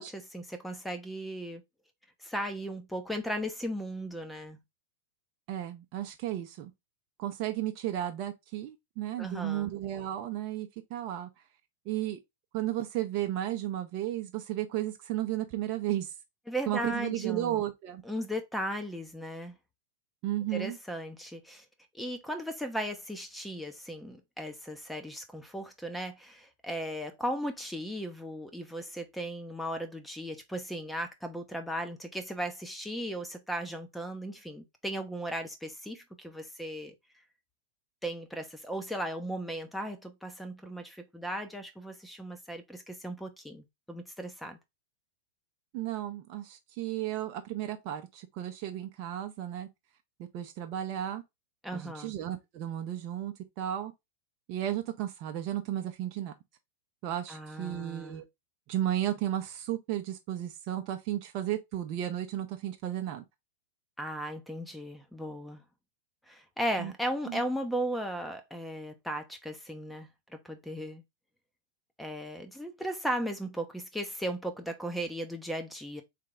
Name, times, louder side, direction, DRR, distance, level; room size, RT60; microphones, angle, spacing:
voice 1, 0.0-1.6 2.2-4.6 9.2-9.7 16.5-17.6 18.0-19.5 20.5-21.6 21.9-36.9 38.0-44.6 51.6-52.1 57.3-58.2 64.0-65.6 66.3-71.0 72.0-76.0, equal, 5° left, 0.9 m, -36 dB
voice 2, 5.5-6.7 7.2-11.3 11.9-12.2 12.5-16.1 16.7-18.0 20.2-20.8 45.7-49.7 50.3-51.2 51.7-53.9 54.5-56.3 57.0-58.3 58.7-63.2 66.8-66.9 67.3-67.4, right 12 dB, 45° right, 0.7 m, -34 dB
3.8 x 3.4 x 3.7 m
hypercardioid pair, 105°, 0 cm